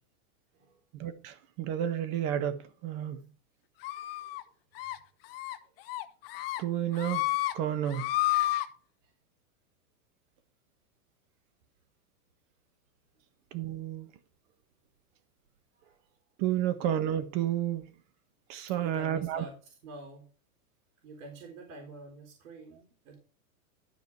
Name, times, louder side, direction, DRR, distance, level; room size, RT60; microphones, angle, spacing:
voice 1, 0.9-3.2 6.6-7.3 7.5-8.1 13.5-14.1 16.4-17.9 18.5-19.4, right 11 dB, 35° right, 1.2 m, -31 dB
sound 1, 3.8-4.4 4.8-5.0 5.3-5.6 5.9-6.6 6.9-7.5 7.9-8.7, left 17 dB, 40° left, 0.8 m, -30 dB
voice 2, 4.0-4.3 9.0-9.1 15.8-16.0 18.8-20.3 21.0-23.2, right 2 dB, 60° right, 4.0 m, -47 dB
12.5 x 5.0 x 4.7 m
supercardioid pair, 160°, 45 cm